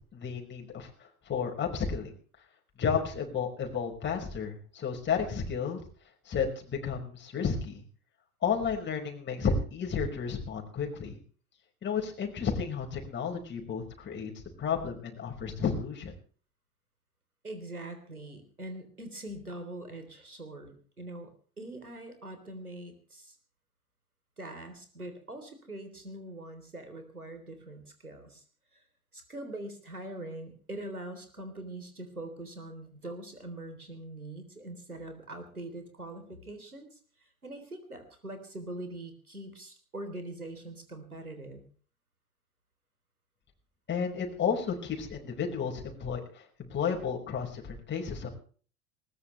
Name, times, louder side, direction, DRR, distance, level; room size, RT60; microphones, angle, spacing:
voice 1, 0.1-0.9 1.3-2.1 2.8-5.8 6.3-7.8 8.4-11.2 11.8-14.3 14.6-16.1 43.9-48.3, left 6 dB, 25° left, 1 dB, 5.3 m, -32 dB
voice 2, 17.4-23.4 24.4-28.4 28.7-28.8 29.1-41.6, right 1 dB, 85° right, 7 dB, 3.8 m, -43 dB
21.0 x 19.0 x 3.3 m, 0.43 s
figure-of-eight pair, 80°, 43 cm